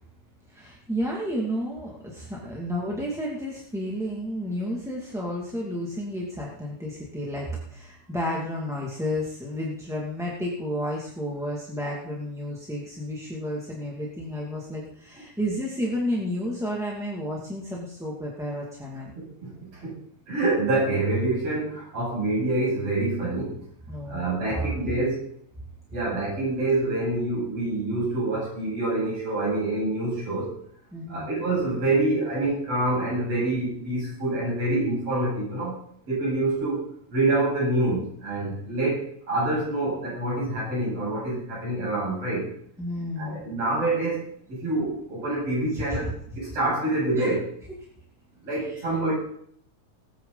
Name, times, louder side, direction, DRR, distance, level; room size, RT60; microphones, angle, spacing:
voice 1, 0.5-19.1 23.9-25.0 30.9-31.3 42.8-43.4 45.7-46.1 47.1-47.3, equal, ahead, -4 dB, 1.8 m, -31 dB
voice 2, 19.2-19.9 20.3-23.5 24.1-25.3 25.9-30.5 31.1-35.7 36.1-36.8 37.1-42.5 43.2-44.2 44.6-46.1 46.4-47.4 48.4-49.1, right 2 dB, 55° right, -7 dB, 9.0 m, -26 dB
20.0 x 9.3 x 4.0 m, 0.65 s
omnidirectional pair, 3.3 m